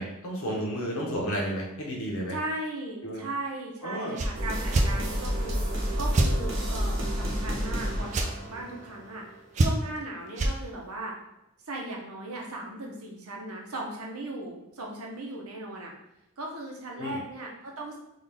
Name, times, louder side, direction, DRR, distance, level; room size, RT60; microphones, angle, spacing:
voice 1, 0.0-2.4 3.0-3.2 3.8-4.2 16.9-17.2, equal, 75° left, -2 dB, 1.1 m, -32 dB
voice 2, 2.3-5.6 6.0-9.2 9.5-11.1 11.7-15.9 16.4-18.0, right 2 dB, 85° right, -1 dB, 0.9 m, -37 dB
sound 1, 4.1-4.3 4.7-4.9 6.1-6.3 8.1-8.3 9.5-10.0 10.3-10.5, right 2 dB, 30° right, 0.3 m, -24 dB
sound 2, 4.3-9.3, equal, 60° right, 0.9 m, -30 dB
3.9 x 2.5 x 3.4 m, 0.85 s
head